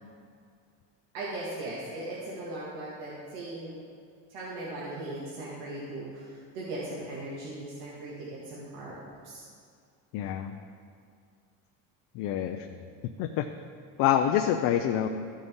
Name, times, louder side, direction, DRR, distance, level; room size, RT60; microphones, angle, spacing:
voice 1, 1.1-3.7 4.3-8.9 9.2-9.4, right 2 dB, 90° right, -7 dB, 1.9 m, -38 dB
voice 2, 10.1-10.6 12.1-12.7 13.2-13.5 14.0-15.1, left 10 dB, 65° left, 6 dB, 0.6 m, -26 dB
13.0 x 6.5 x 3.6 m, 2.2 s
cardioid pair, 125°, 37 cm